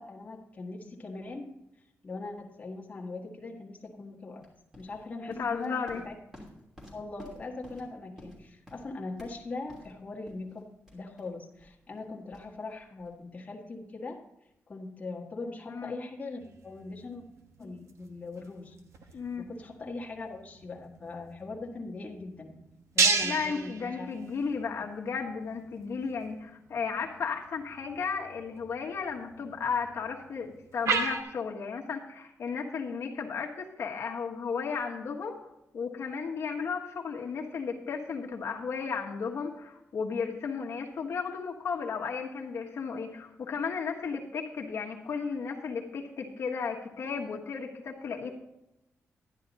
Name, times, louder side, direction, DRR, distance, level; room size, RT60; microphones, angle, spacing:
voice 1, 0.0-1.6 2.0-4.5 4.8-5.8 6.0-6.1 6.9-14.2 14.7-17.2 17.6-18.7 19.4-22.6 22.9-24.3, left 3 dB, 25° left, -1 dB, 1.5 m, -41 dB
sound 1, 4.4-13.2, equal, 10° right, 3.0 m, -52 dB
voice 2, 5.4-6.0 15.7-15.9 19.1-19.5 23.2-35.4 35.7-48.3, left 5 dB, 60° left, 0 dB, 1.3 m, -34 dB
sound 2, 16.4-31.2, right 4 dB, 75° right, 1.1 m, -36 dB
12.0 x 10.5 x 4.0 m, 0.88 s
wide cardioid pair, 175°, 5 cm